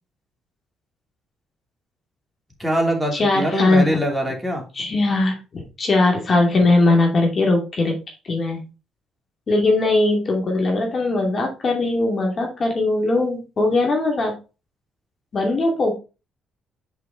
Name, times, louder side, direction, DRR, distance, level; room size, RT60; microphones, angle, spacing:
voice 1, 2.6-4.6, equal, ahead, 0 dB, 3.0 m, -23 dB
voice 2, 3.1-4.0 4.8-8.7 9.5-14.3 15.3-16.0, left 2 dB, 45° left, 1 dB, 2.6 m, -20 dB
6.7 x 5.0 x 4.3 m, 0.30 s
cardioid pair, 90°, 0 cm